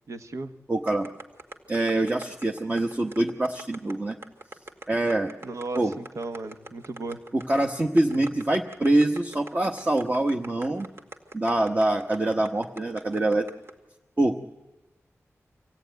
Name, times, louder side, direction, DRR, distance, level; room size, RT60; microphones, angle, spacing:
voice 1, 0.1-0.5 5.4-7.2, right 3 dB, 75° right, 8 dB, 1.2 m, -35 dB
voice 2, 0.7-1.1 1.7-4.2 4.9-5.3 5.8-5.9 7.3-10.9 11.3-13.5 14.2-14.5, right 1 dB, 30° right, 3 dB, 1.1 m, -24 dB
sound 1, 0.9-13.7, right 2 dB, 55° right, 2.2 m, -43 dB
25.5 x 17.0 x 9.3 m, 1.1 s
wide cardioid pair, 115°, 5 cm